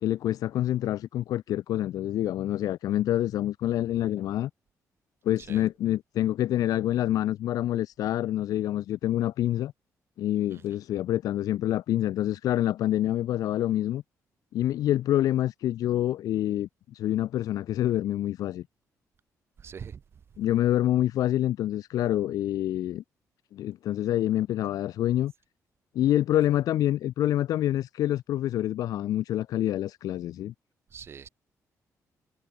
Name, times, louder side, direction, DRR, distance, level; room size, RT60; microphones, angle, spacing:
voice 1, 0.0-4.5 5.2-9.7 10.2-14.0 14.5-18.6 20.4-23.0 23.5-25.3 25.9-30.5, left 12 dB, 80° left, 0.5 m, -27 dB
voice 2, 19.6-20.0 30.9-31.3, right 7 dB, 40° right, 2.4 m, -42 dB
cardioid pair, 160°, 6 cm